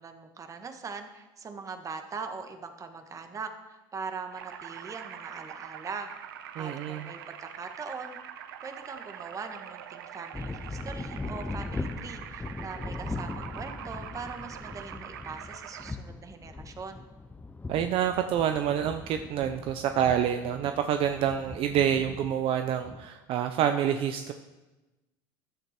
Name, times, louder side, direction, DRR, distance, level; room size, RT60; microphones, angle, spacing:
voice 1, 0.0-6.1 6.6-8.2 8.6-17.1, right 5 dB, 30° right, 7 dB, 1.6 m, -41 dB
sound 1, 4.3-15.9, right 9 dB, 85° right, 1.0 m, -44 dB
voice 2, 6.6-7.1 17.7-24.3, right 9 dB, 55° right, 8 dB, 0.8 m, -27 dB
sound 2, 10.3-23.1, left 3 dB, 15° left, 0.7 m, -40 dB
14.5 x 10.5 x 4.4 m, 1.1 s
supercardioid pair, 95°, 11 cm